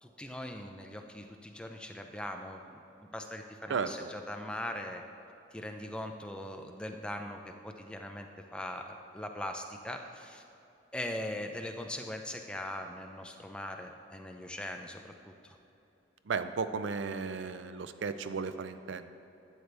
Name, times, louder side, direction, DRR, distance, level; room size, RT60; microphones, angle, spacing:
voice 1, 0.0-5.0 5.5-10.4 10.9-15.6, left 1 dB, 5° left, 4 dB, 0.4 m, -41 dB
voice 2, 16.3-19.1, right 5 dB, 80° right, 11 dB, 0.4 m, -34 dB
12.0 x 8.0 x 3.4 m, 2.9 s
head